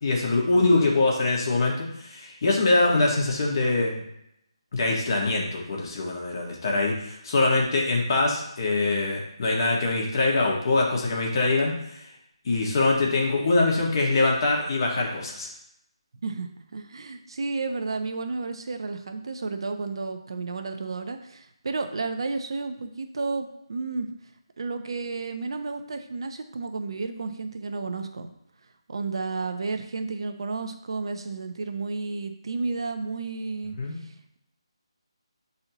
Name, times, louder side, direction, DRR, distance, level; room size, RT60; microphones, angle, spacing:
voice 1, 0.0-4.0 4.7-11.7 12.4-15.5 33.8-33.9, left 2 dB, 45° left, -2 dB, 1.6 m, -23 dB
voice 2, 16.2-24.1 24.6-28.3 28.9-33.8 34.0-34.4, right 3 dB, 60° right, 7 dB, 0.7 m, -32 dB
7.8 x 4.1 x 3.0 m, 0.78 s
figure-of-eight pair, 155°, 3 cm